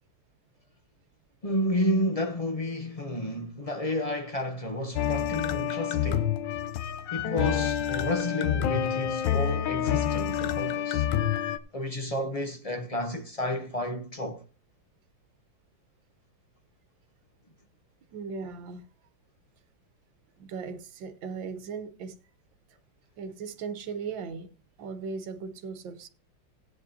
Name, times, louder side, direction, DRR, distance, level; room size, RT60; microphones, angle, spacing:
voice 1, 1.4-6.3 7.1-11.1 11.7-14.4, left 1 dB, 50° left, 0.4 m, -31 dB
sound 1, 5.0-11.6, left 10 dB, 75° left, 1.4 m, -28 dB
voice 2, 18.1-18.8 20.4-22.2 23.2-24.5 24.8-26.1, right 5 dB, 80° right, 1.7 m, -37 dB
17.0 x 9.2 x 2.8 m
omnidirectional pair, 2.0 m